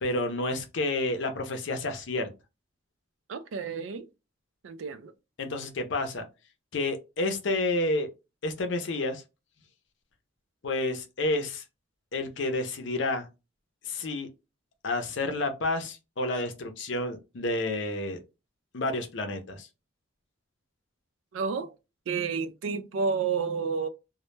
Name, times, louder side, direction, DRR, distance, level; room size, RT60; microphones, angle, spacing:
voice 1, 0.0-2.3 5.4-6.2 6.7-8.1 8.4-9.2 10.6-11.6 12.1-13.3 13.8-14.3 14.8-18.2 18.7-19.7, left 2 dB, 70° left, 0.5 m, -30 dB
voice 2, 3.3-4.1 4.6-5.1 21.3-21.7 22.1-23.9, right 5 dB, 85° right, 0.4 m, -30 dB
2.2 x 2.0 x 3.1 m
head